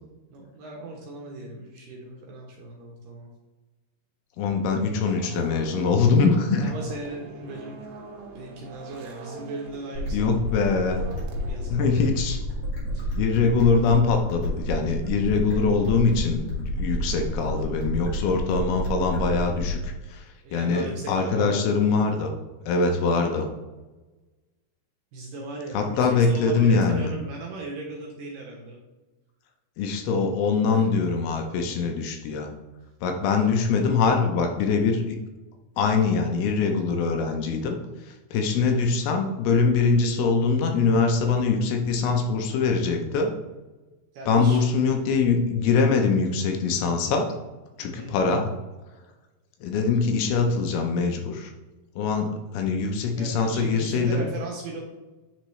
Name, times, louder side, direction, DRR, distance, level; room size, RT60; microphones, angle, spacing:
voice 1, 0.3-3.3 6.6-7.8 8.3-10.3 11.4-12.1 12.9-13.2 16.8-16.9 20.4-21.7 25.1-28.8 30.7-30.9 44.1-44.6 47.8-48.1 53.1-54.8, right 2 dB, 70° right, -1 dB, 2.2 m, -38 dB
voice 2, 4.4-6.7 10.1-11.0 11.7-12.4 13.1-22.3 22.7-23.5 25.7-27.1 29.8-32.5 33.0-35.2 35.8-37.8 38.1-43.3 44.3-47.3 47.8-48.5 49.6-51.5 52.0-54.3, left 4 dB, 80° left, 3 dB, 2.5 m, -23 dB
sound 1, 5.0-12.5, right 3 dB, 85° right, 3.1 m, -43 dB
sound 2, 9.9-19.9, equal, 50° left, 1.6 m, -30 dB
10.0 x 3.9 x 3.1 m, 1.1 s
omnidirectional pair, 4.8 m